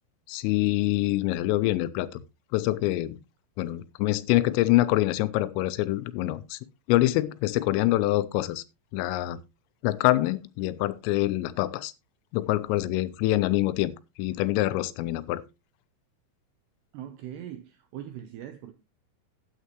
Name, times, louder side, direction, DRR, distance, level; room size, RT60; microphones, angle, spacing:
voice 1, 0.3-2.2 2.5-3.2 3.6-6.6 6.9-8.6 8.9-9.4 9.8-11.9 12.3-15.4, left 16 dB, 85° left, 3.3 m, -25 dB
voice 2, 16.9-18.7, right 11 dB, 80° right, 2.4 m, -41 dB
13.0 x 9.3 x 3.1 m
omnidirectional pair, 5.9 m